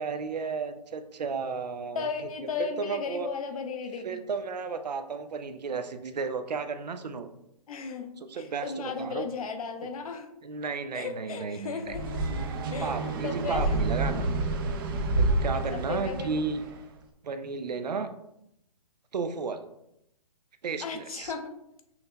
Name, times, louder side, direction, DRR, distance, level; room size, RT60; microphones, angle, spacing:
voice 1, 0.0-2.1 2.6-3.3 4.0-7.3 8.2-9.3 10.4-12.0 12.8-14.3 15.1-16.6 17.2-18.1 19.1-19.6 20.6-21.3, right 5 dB, 90° right, 9 dB, 0.5 m, -33 dB
voice 2, 1.9-4.2 7.7-10.3 10.9-12.2 12.7-13.7 15.5-16.4 20.8-21.5, left 5 dB, 60° left, 6 dB, 0.7 m, -35 dB
sound 1, 11.9-16.8, right 2 dB, 35° right, 0.4 m, -29 dB
5.7 x 2.8 x 2.2 m, 0.83 s
hypercardioid pair, 145°, 21 cm